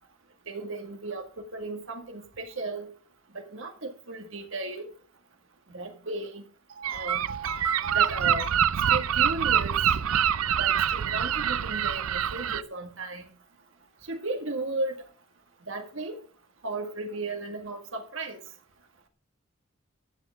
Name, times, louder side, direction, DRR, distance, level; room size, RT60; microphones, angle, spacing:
voice 1, 0.5-2.9 3.3-4.9 5.7-6.4 6.8-8.5 8.9-9.8 10.6-13.3 14.0-15.0 15.7-16.2 16.6-18.4, right 3 dB, 65° right, 4 dB, 2.0 m, -35 dB
Gull seagull, 6.8-12.6, right 9 dB, 80° right, 0.5 m, -25 dB
13.0 x 10.0 x 3.7 m, 0.42 s
head